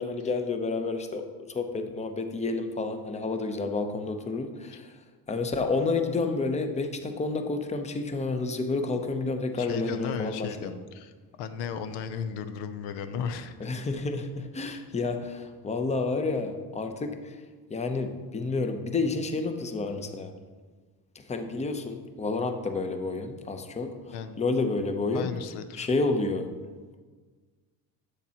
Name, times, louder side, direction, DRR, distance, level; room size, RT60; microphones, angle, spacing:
voice 1, 0.0-4.9 5.3-10.7 13.6-17.4 17.7-20.3 21.2-25.3 25.8-26.5, left 3 dB, 15° left, 7 dB, 0.6 m, -30 dB
voice 2, 9.6-11.1 11.4-13.5 24.1-24.4 25.1-25.9, left 7 dB, 80° left, 10 dB, 0.6 m, -35 dB
7.4 x 6.6 x 2.9 m, 1.4 s
supercardioid pair, 90°, 40 cm